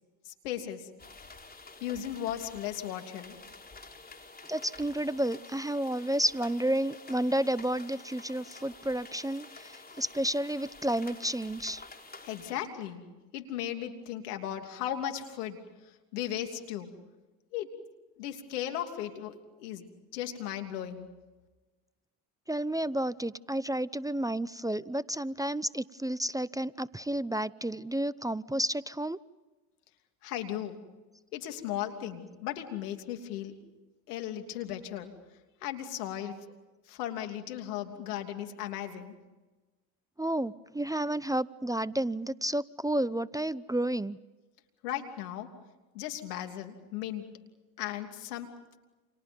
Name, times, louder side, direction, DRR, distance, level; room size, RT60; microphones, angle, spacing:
voice 1, 0.2-0.9 1.8-3.4 12.2-13.1 13.3-15.6 15.8-16.9 17.5-17.7 18.2-19.9 20.1-21.1 30.2-30.8 31.3-33.6 34.1-35.1 35.6-36.4 36.9-39.1 44.8-45.5 45.9-47.4 47.8-48.5, left 11 dB, 90° left, 5 dB, 3.1 m, -36 dB
sound 1, 1.0-12.5, left 3 dB, 20° left, 4.5 m, -50 dB
voice 2, 4.5-11.8 22.5-29.2 40.2-44.2, right 1 dB, 10° right, 17 dB, 0.8 m, -31 dB
30.0 x 28.5 x 5.4 m, 1.2 s
hypercardioid pair, 70°, 45 cm